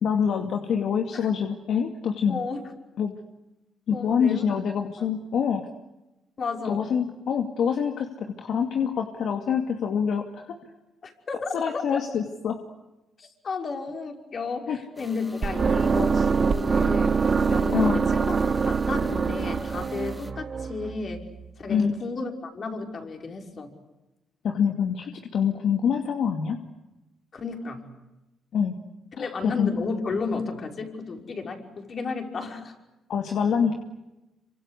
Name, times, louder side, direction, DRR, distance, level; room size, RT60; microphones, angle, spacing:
voice 1, 0.0-2.4 3.0-3.1 3.9-5.7 6.6-10.6 11.5-12.6 14.7-14.8 17.7-18.0 21.7-21.9 24.4-26.6 28.5-28.8 29.2-29.7 33.1-33.8, left 7 dB, 65° left, 4 dB, 2.4 m, -25 dB
voice 2, 2.3-2.6 3.9-4.6 6.4-6.9 11.0-12.0 13.2-17.2 17.5-18.4 18.7-21.2 21.6-23.7 27.3-27.8 29.2-32.7, left 4 dB, 45° left, 4 dB, 5.6 m, -33 dB
sound 1, 15.0-20.3, right 1 dB, 5° right, 2.4 m, -45 dB
sound 2, 15.4-21.5, right 5 dB, 35° right, 1.0 m, -24 dB
27.0 x 25.5 x 8.3 m, 1.0 s
cardioid pair, 90°, 0 cm